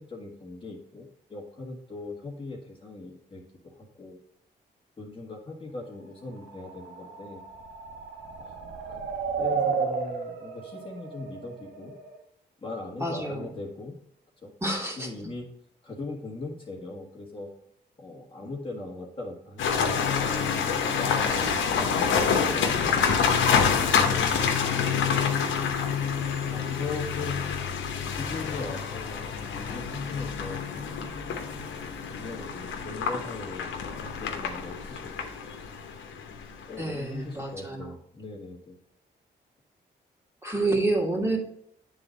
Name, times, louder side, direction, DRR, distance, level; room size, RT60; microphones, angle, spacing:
voice 1, 0.0-4.2 5.0-7.4 8.4-8.5 8.9-9.0 9.4-11.9 12.6-14.0 14.4-14.5 15.0-15.4 15.8-17.5 18.0-20.6 20.9-24.5 24.8-24.9 25.2-25.6 26.5-27.3 28.1-31.4 32.1-35.1 36.7-38.8, left 3 dB, 25° left, -2 dB, 1.7 m, -40 dB
sound 1, 6.4-12.2, right 5 dB, 80° right, 1.2 m, -33 dB
voice 2, 13.0-13.5 14.6-15.1 36.8-37.9 40.4-41.4, right 2 dB, 15° right, -1 dB, 2.5 m, -28 dB
sound 2, 19.6-36.7, left 6 dB, 90° left, 0.9 m, -27 dB
8.9 x 4.0 x 4.0 m, 0.70 s
cardioid pair, 65°, 19 cm